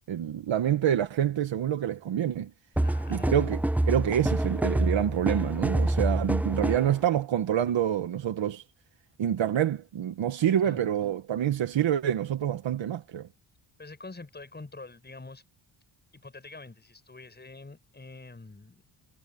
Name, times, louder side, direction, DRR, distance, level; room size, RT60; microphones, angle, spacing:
voice 1, 0.1-2.5 3.1-3.6 3.9-8.6 9.2-13.3, right 10 dB, 65° right, 1.4 m, -27 dB
voice 2, 2.8-3.4 10.6-10.8 13.8-15.4 16.1-18.8, left 3 dB, 20° left, 6.6 m, -46 dB
sound 1, 2.8-7.0, right 1 dB, 5° right, 0.3 m, -27 dB
wide cardioid pair, 130°, 48 cm